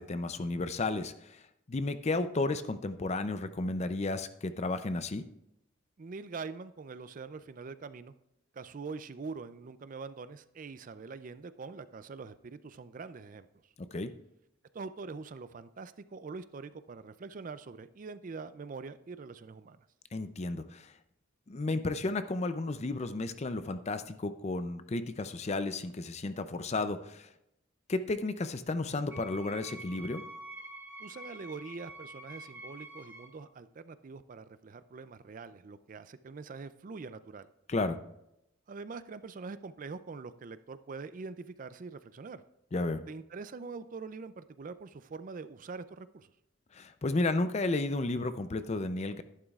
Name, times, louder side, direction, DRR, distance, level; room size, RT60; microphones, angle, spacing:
voice 1, 0.0-1.4 1.7-5.3 13.9-14.1 20.1-20.9 21.5-27.3 27.9-30.2 37.7-38.0 42.7-43.0 46.7-49.2, left 2 dB, 35° left, 11 dB, 0.5 m, -33 dB
voice 2, 6.0-8.1 8.5-13.5 14.7-19.9 31.0-37.5 38.7-42.4 43.1-46.3, right 4 dB, 40° right, 13 dB, 0.4 m, -44 dB
Wind instrument woodwind instrument, 29.1-33.4, right 1 dB, 10° right, 2.3 m, -47 dB
12.0 x 11.0 x 2.4 m, 0.84 s
head